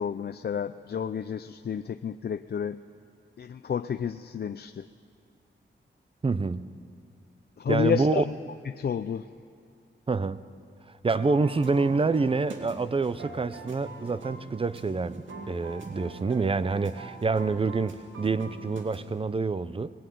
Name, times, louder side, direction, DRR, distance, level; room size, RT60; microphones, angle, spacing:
voice 1, 0.0-2.8 3.4-4.9 7.6-8.3 8.7-9.3, left 7 dB, 55° left, 9 dB, 0.5 m, -30 dB
voice 2, 6.2-6.7 7.7-8.2 10.1-10.4 11.0-19.9, right 4 dB, 30° right, 15 dB, 0.6 m, -27 dB
sound 1, 11.1-19.2, right 3 dB, 80° right, 2.4 m, -44 dB
20.0 x 19.0 x 9.3 m, 2.3 s
wide cardioid pair, 140°, 20 cm